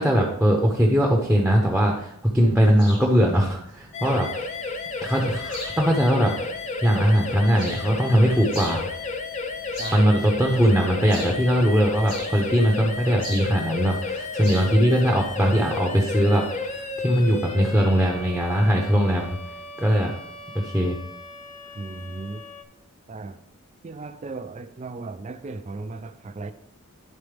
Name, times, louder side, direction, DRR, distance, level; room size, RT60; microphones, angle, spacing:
voice 1, 0.0-4.3 5.0-6.3 6.8-8.9 9.9-19.4 19.8-20.1 20.5-21.0, equal, 5° right, 0 dB, 0.7 m, -20 dB
sound 1, 2.4-15.9, left 1 dB, 55° left, 3.1 m, -42 dB
sound 2, 3.9-22.6, left 3 dB, 35° left, 0.6 m, -33 dB
voice 2, 9.8-10.1 21.8-22.4 23.1-23.4 23.8-26.5, right 3 dB, 30° right, 7 dB, 0.4 m, -36 dB
10.5 x 4.0 x 3.4 m, 0.72 s
head